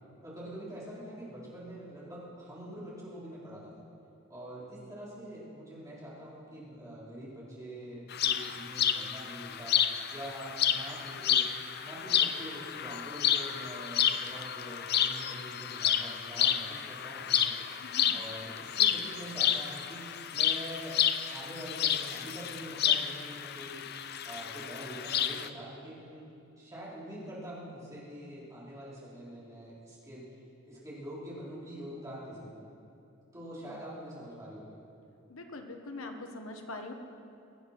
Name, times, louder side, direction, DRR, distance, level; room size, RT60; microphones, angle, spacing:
voice 1, 0.2-3.8 4.3-11.5 11.8-17.7 18.1-21.0 21.3-23.9 24.2-26.3 26.6-30.2 30.6-32.7 33.3-34.8, equal, 15° right, -8 dB, 4.3 m, -44 dB
sound 1, 8.1-25.5, left 9 dB, 50° left, 0.5 m, -30 dB
voice 2, 17.8-18.2 33.7-33.8 35.3-36.9, left 2 dB, 80° left, 4 dB, 1.3 m, -43 dB
23.0 x 8.3 x 6.0 m, 2.7 s
head